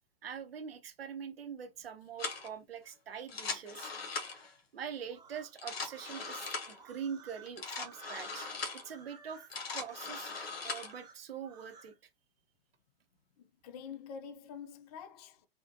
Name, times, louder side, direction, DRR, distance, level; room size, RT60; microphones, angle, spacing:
voice 1, 0.2-3.9 4.7-8.5 8.8-9.4 9.7-10.3 10.6-11.9, right 7 dB, 75° right, 0.7 m, -43 dB
sound 1, 2.2-2.5 3.2-4.5 5.4-6.8 7.5-8.9 9.3-10.9, left 4 dB, 75° left, 0.9 m, -40 dB
sound 2, 5.1-11.9, right 6 dB, 15° right, 0.9 m, -56 dB
voice 2, 13.4-15.5, left 7 dB, 40° left, 0.6 m, -47 dB
3.5 x 2.2 x 2.6 m
figure-of-eight pair, 110°, 30 cm